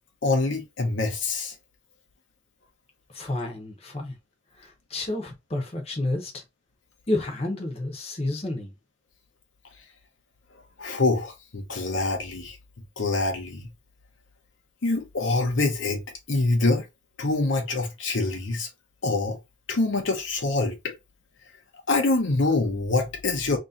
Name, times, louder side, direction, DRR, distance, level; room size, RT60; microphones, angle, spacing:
voice 1, 0.2-1.5 10.8-12.6 13.0-13.7 14.8-16.0 16.3-16.8 17.2-18.7 19.0-19.4 19.7-20.9 21.9-23.6, left 3 dB, 60° left, 0.8 m, -25 dB
voice 2, 3.1-4.2 4.6-6.4 7.1-8.7, left 2 dB, 30° left, 0.9 m, -30 dB
3.0 x 2.8 x 3.7 m
head